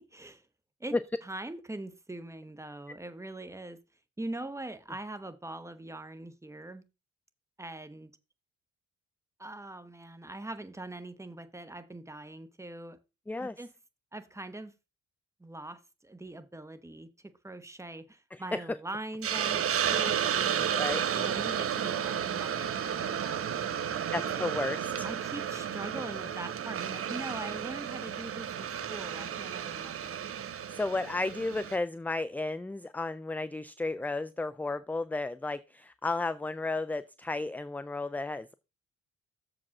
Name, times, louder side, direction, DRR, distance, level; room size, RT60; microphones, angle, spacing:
voice 1, 0.1-0.4 0.8-0.9 1.2-3.8 4.2-6.8 7.6-8.1 9.4-13.0 13.4-13.7 14.1-14.7 15.4-20.7 21.1-24.5 25.0-30.2, right 2 dB, 10° right, 1.0 m, -42 dB
voice 2, 18.3-18.6 20.7-21.0 24.1-25.1 30.7-38.5, left 2 dB, 5° left, 0.4 m, -33 dB
Hiss, 19.2-31.8, right 8 dB, 50° right, 0.9 m, -32 dB
7.1 x 5.0 x 5.9 m
cardioid pair, 90°, 30 cm